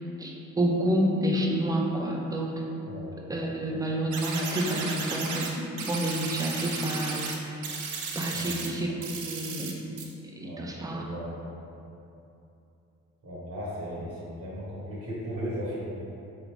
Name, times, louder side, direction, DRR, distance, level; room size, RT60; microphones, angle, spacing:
voice 1, 0.2-2.6 3.3-7.7 8.2-9.7 10.4-11.1, right 1 dB, 10° right, -1 dB, 0.5 m, -29 dB
sound 1, 4.1-5.5 5.8-7.3 7.6-8.7 9.0-9.7 10.0-10.1, right 5 dB, 75° right, 0.6 m, -34 dB
voice 2, 10.4-11.3 13.2-15.8, equal, 50° right, -7 dB, 1.2 m, -36 dB
3.7 x 3.4 x 3.2 m, 2.8 s
cardioid pair, 90°, 30 cm